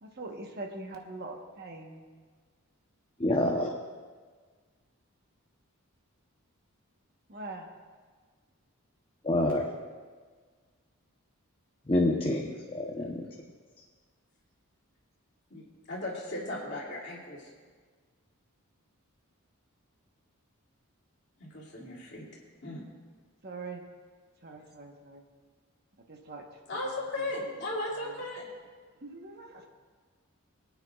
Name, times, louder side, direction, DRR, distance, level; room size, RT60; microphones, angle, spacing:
voice 1, 0.0-2.0 7.3-7.7 23.4-23.8 24.4-25.2 26.1-26.4 29.0-29.6, right 2 dB, 45° right, 2 dB, 1.1 m, -42 dB
voice 2, 3.2-3.7 9.2-9.7 11.9-13.2, left 1 dB, 25° left, 0 dB, 0.7 m, -27 dB
voice 3, 15.5-17.5 21.4-22.3 22.6-22.8 26.7-28.4, left 1 dB, 50° left, -3 dB, 2.6 m, -36 dB
25.5 x 9.3 x 2.4 m, 1.5 s
head